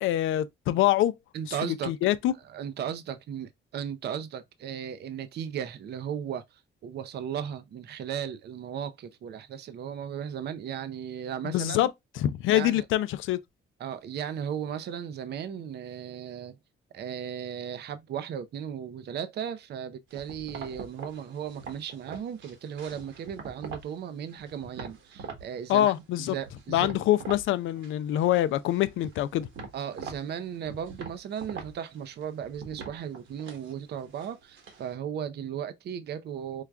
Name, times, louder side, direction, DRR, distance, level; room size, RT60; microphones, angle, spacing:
voice 1, 0.0-1.1 1.6-2.3 11.4-11.9 12.2-13.4 25.7-26.4 26.7-29.5, left 13 dB, 80° left, 0.4 m, -25 dB
voice 2, 1.3-1.9 2.4-11.9 12.5-12.8 13.8-16.6 16.9-25.9 26.2-27.0 29.7-36.6, right 8 dB, 55° right, 0.5 m, -36 dB
sound 1, 20.1-24.0 24.3-25.5 25.8-27.5 27.8-28.4 28.7-34.9, right 5 dB, 75° right, 1.3 m, -43 dB
4.7 x 2.2 x 2.3 m
cardioid pair, 90°, 20 cm